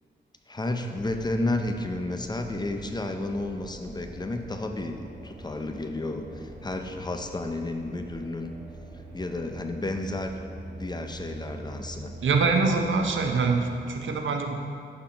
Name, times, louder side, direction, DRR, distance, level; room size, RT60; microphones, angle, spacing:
voice 1, 0.5-8.5 9.1-10.3 10.6-12.1, left 2 dB, 20° left, 5 dB, 0.5 m, -32 dB
sound 1, 1.0-13.9, right 1 dB, 40° right, 1.0 m, -44 dB
voice 2, 12.2-14.6, right 4 dB, 85° right, 3 dB, 0.7 m, -24 dB
6.8 x 5.6 x 4.2 m, 2.2 s
wide cardioid pair, 90°, 19 cm